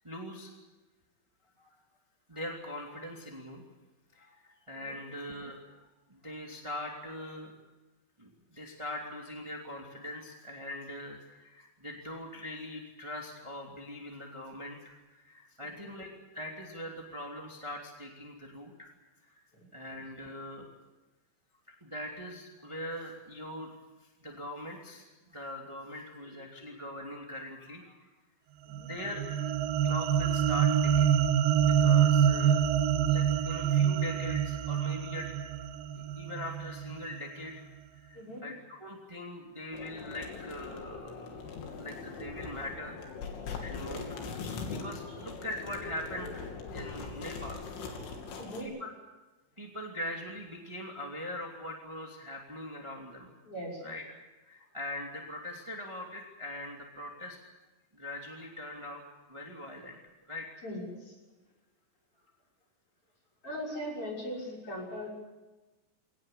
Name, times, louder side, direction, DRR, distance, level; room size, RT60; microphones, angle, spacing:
voice 1, 0.0-0.5 1.6-1.7 2.3-3.6 4.1-5.6 6.1-7.5 8.2-16.1 16.3-18.9 19.7-20.7 21.7-23.7 24.0-28.1 28.8-29.2 29.8-31.2 31.6-32.6 33.1-35.3 35.9-37.6 37.9-41.3 41.7-43.0 43.6-44.2 44.6-46.4 46.7-47.6 48.6-48.9 49.6-53.3 53.8-54.0 54.4-57.4 57.9-59.0 59.3-60.0 60.3-60.5, left 1 dB, 15° right, 0 dB, 1.2 m, -42 dB
sound 1, 28.7-37.2, right 8 dB, 85° right, 2.0 m, -26 dB
sound 2, 39.7-48.6, left 4 dB, 75° left, 5.2 m, -41 dB
voice 2, 48.4-48.7 53.4-53.8 60.6-61.2 63.4-65.1, equal, 25° left, -2 dB, 6.9 m, -40 dB
22.5 x 18.5 x 8.5 m, 1.1 s
omnidirectional pair, 5.7 m